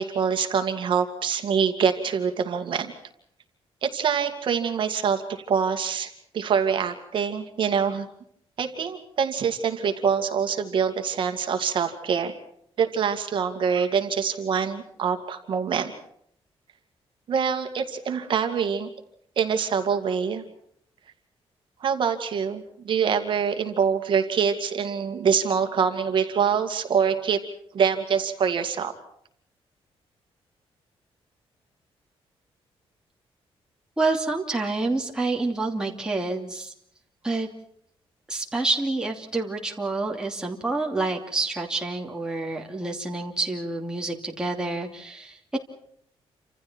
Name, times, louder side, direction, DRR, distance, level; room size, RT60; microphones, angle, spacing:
voice 1, 0.0-2.9 3.8-8.1 8.6-12.3 12.8-15.9 17.3-18.9 19.4-20.4 21.8-27.4 27.7-28.9, right 6 dB, 50° right, 6 dB, 2.3 m, -25 dB
voice 2, 34.0-36.7 37.2-37.5 38.3-45.6, right 3 dB, 5° right, 0 dB, 2.8 m, -28 dB
29.5 x 27.0 x 4.5 m, 0.69 s
wide cardioid pair, 175°, 10 cm